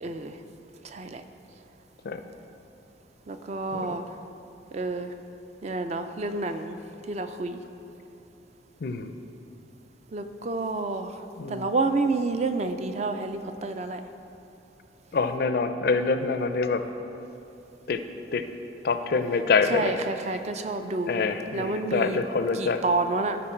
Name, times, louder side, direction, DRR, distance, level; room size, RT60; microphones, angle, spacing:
voice 1, 0.0-0.4 0.8-1.2 3.3-4.1 4.7-5.1 5.6-6.8 7.1-7.6 10.1-11.2 11.5-14.0 19.7-22.2 22.5-23.4, right 3 dB, 35° right, 8 dB, 0.3 m, -29 dB
voice 2, 15.1-16.8 17.9-18.0 18.3-18.4 18.8-19.9 21.1-22.8, left 4 dB, 50° left, 9 dB, 0.4 m, -25 dB
12.5 x 4.6 x 4.4 m, 2.8 s
head